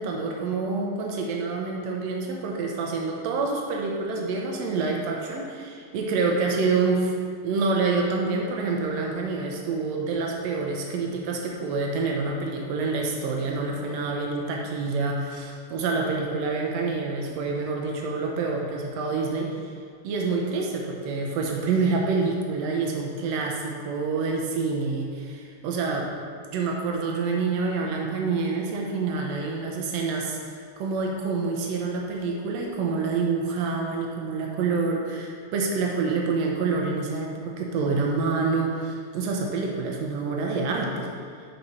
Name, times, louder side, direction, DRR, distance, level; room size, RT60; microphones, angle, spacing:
voice 1, 0.0-7.1 7.4-19.7 20.0-26.1 26.5-41.1, right 4 dB, 85° right, 0 dB, 1.5 m, -27 dB
6.4 x 6.1 x 4.1 m, 2.1 s
omnidirectional pair, 3.8 m